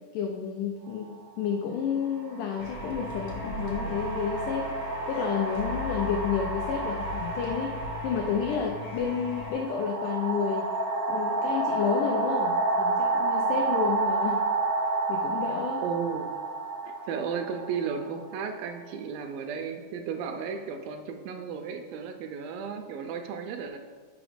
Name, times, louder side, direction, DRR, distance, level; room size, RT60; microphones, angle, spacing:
voice 1, 0.1-4.7 5.1-10.8 11.1-14.4 15.1-15.8, left 7 dB, 85° left, 2 dB, 1.8 m, -30 dB
sound 1, 0.8-1.0 2.0-18.6, right 2 dB, 40° right, 0.6 m, -30 dB
sound 2, 2.6-9.5, left 2 dB, 70° left, 1.4 m, -39 dB
voice 2, 15.8-16.3 16.9-23.8, right 6 dB, 80° right, 6 dB, 2.2 m, -34 dB
6.0 x 5.1 x 4.9 m, 1.5 s
omnidirectional pair, 4.3 m